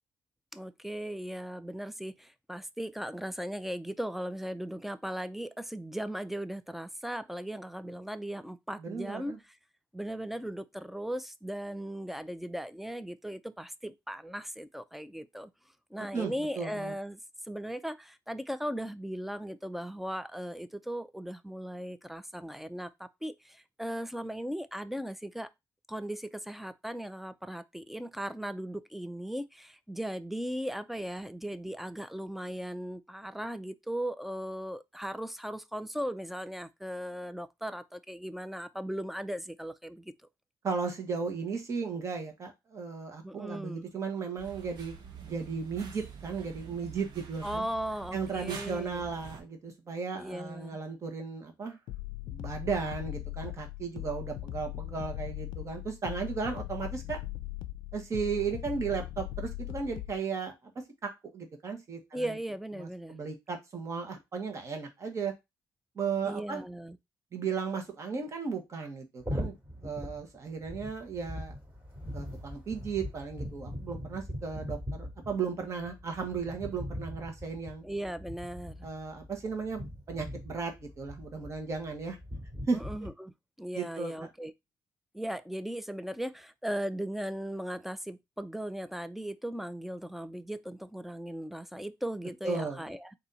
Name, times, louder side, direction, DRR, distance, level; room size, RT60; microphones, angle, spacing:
voice 1, 0.5-9.6 9.9-15.5 15.9-17.2 17.5-25.5 25.9-40.1 43.2-43.9 47.4-49.0 50.1-50.8 62.1-63.2 66.2-67.0 77.8-78.8 82.7-84.5 85.1-93.1, equal, 5° right, 0.4 m, -38 dB
voice 2, 8.8-9.4 16.0-16.9 40.6-44.9 45.2-47.6 48.1-51.8 52.3-57.2 57.9-62.3 62.8-65.3 65.9-66.6 67.3-69.6 69.8-71.5 72.1-77.8 78.8-82.2 82.7-82.8 83.7-84.3 92.4-92.9, right 5 dB, 40° right, 1.3 m, -35 dB
sound 1, 44.4-49.4, right 7 dB, 70° right, 1.1 m, -46 dB
sound 2, 51.9-60.2, left 16 dB, 80° left, 0.4 m, -39 dB
sound 3, 69.2-83.1, equal, 20° right, 2.9 m, -41 dB
4.1 x 2.7 x 3.9 m
cardioid pair, 100°, 8 cm